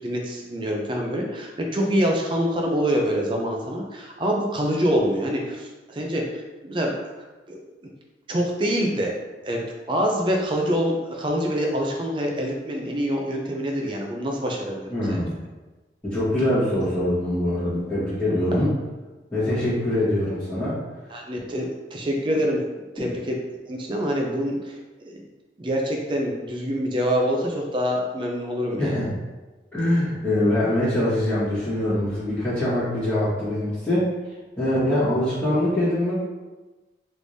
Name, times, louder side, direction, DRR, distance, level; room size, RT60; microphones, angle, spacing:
voice 1, 0.0-6.2 6.6-6.9 7.5-7.6 8.3-9.1 9.4-15.2 21.1-23.4 23.7-24.7 25.0-25.2 25.6-29.0, equal, 25° right, 0 dB, 0.4 m, -25 dB
voice 2, 14.9-15.4 16.0-18.7 19.3-20.8 28.8-29.1 29.7-34.1 34.6-36.3, left 1 dB, 10° left, -16 dB, 1.3 m, -23 dB
3.5 x 3.2 x 2.6 m, 1.2 s
head